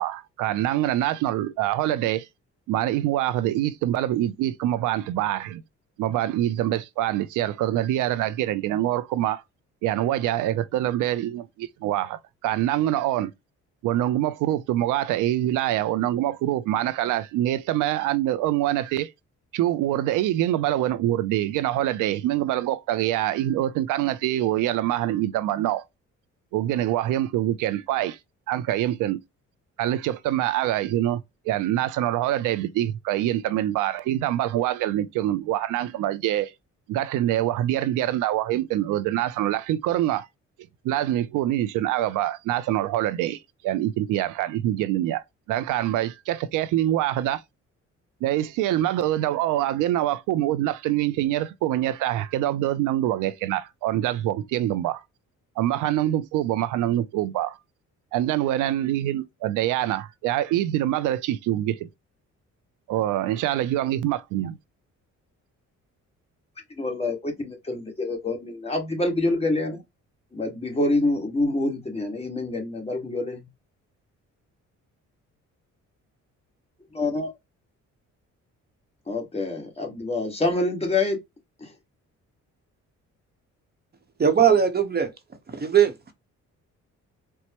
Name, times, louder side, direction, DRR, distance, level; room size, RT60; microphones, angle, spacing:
voice 1, 0.0-2.3 2.7-5.6 6.0-9.4 9.8-13.3 13.8-19.1 19.5-25.8 26.5-28.2 28.5-29.2 29.8-36.5 36.9-40.3 40.8-45.2 45.5-47.4 48.2-55.0 55.6-57.6 58.1-61.9 62.9-64.6, right 13 dB, 90° right, 0.5 m, -25 dB
voice 2, 66.8-69.8 70.3-73.5 76.9-77.3 79.1-81.2 81.6-81.7, left 2 dB, 20° left, 1.5 m, -26 dB
voice 3, 84.2-85.1 85.5-86.1, right 8 dB, 30° right, 0.9 m, -20 dB
4.5 x 2.1 x 2.8 m
cardioid pair, 90°, 30 cm